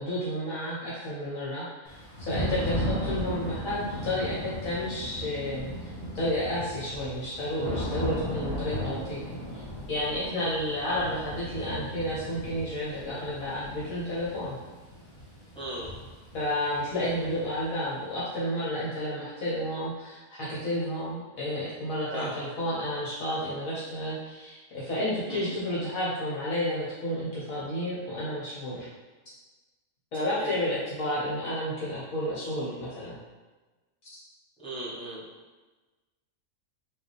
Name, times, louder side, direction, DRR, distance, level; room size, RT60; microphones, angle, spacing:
voice 1, 0.0-14.5 16.3-28.9 30.1-33.2, left 1 dB, 70° left, -7 dB, 1.3 m, -31 dB
Thunder / Rain, 1.9-17.6, equal, 35° left, 1.3 m, -36 dB
voice 2, 15.5-15.9 22.1-22.3 25.3-25.5 30.1-30.6 34.6-35.2, right 1 dB, 5° left, -8 dB, 1.0 m, -37 dB
4.7 x 2.4 x 3.3 m, 1.2 s
omnidirectional pair, 1.5 m